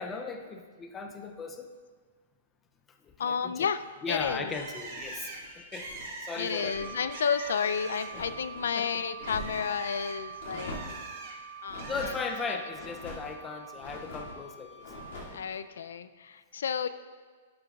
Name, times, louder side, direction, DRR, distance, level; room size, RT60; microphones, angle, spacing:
voice 1, 0.0-1.7 3.0-3.7 4.0-7.0 8.1-8.2 8.7-8.9 11.9-14.9, left 4 dB, 10° left, 5 dB, 0.4 m, -37 dB
voice 2, 3.2-3.8 4.1-4.5 6.4-10.8 11.6-12.1 12.5-12.6 15.3-16.9, left 6 dB, 85° left, 13 dB, 0.3 m, -31 dB
sound 1, 4.1-6.1 6.5-7.0 7.4-8.7 9.1-9.8 10.4-11.1 11.7-12.2 12.7-13.3 13.8-14.4 14.8-15.4, left 1 dB, 55° left, 2.2 m, -44 dB
Bird, 4.5-8.3 8.7-11.3 11.8-12.4, right 3 dB, 35° right, 1.1 m, -43 dB
Wind instrument woodwind instrument, 6.6-15.2, right 6 dB, 85° right, 2.1 m, -45 dB
11.5 x 6.9 x 2.3 m, 1.5 s
hypercardioid pair, 175°, 0 cm